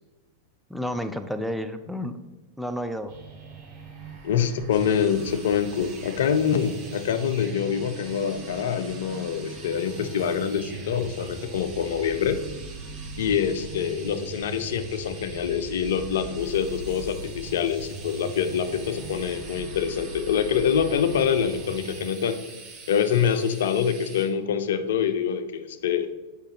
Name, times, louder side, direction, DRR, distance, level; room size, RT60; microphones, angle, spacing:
voice 1, 0.7-2.2 2.6-3.1, equal, ahead, 8 dB, 0.4 m, -31 dB
sound 1, 3.1-22.1, right 3 dB, 45° right, 1.0 m, -41 dB
voice 2, 4.2-12.4 13.2-22.4 22.9-26.1, left 7 dB, 60° left, 10 dB, 0.4 m, -25 dB
sound 2, 4.7-24.3, right 4 dB, 25° right, 1.3 m, -45 dB
6.6 x 4.9 x 3.0 m, 1.2 s
figure-of-eight pair, 90°, 0 cm